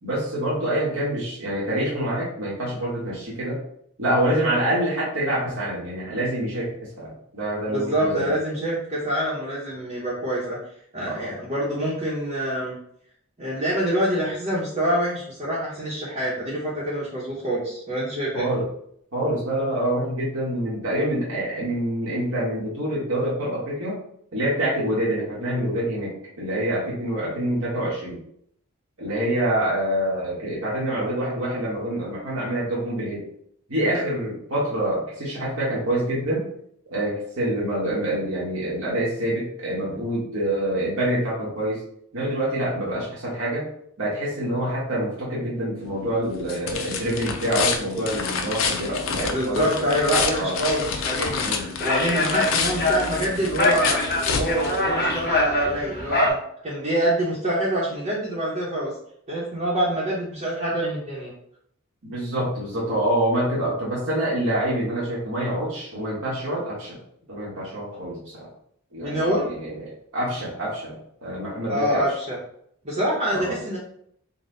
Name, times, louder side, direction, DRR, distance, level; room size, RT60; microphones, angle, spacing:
voice 1, 0.0-3.6 4.0-6.7 7.0-8.3 11.0-11.3 18.3-18.7 19.1-24.0 24.3-28.2 29.0-33.3 33.7-36.4 36.9-41.8 42.1-43.7 44.0-49.7 50.3-50.6 51.4-51.7 62.0-67.0 67.3-68.5 68.9-69.8 70.1-72.1 73.3-73.6, right 1 dB, 85° right, -6 dB, 1.3 m, -26 dB
voice 2, 7.7-10.6 10.9-12.7 13.4-18.5 49.3-51.4 51.8-56.4 56.6-58.9 59.3-61.3 69.0-69.4 71.7-72.4 72.8-73.8, right 1 dB, 35° right, -8 dB, 0.9 m, -26 dB
sound 1, 45.8-55.3, left 5 dB, 80° left, 0.6 m, -29 dB
sound 2, 51.1-56.3, left 1 dB, 50° left, 1.0 m, -24 dB
4.0 x 2.2 x 3.8 m, 0.69 s
head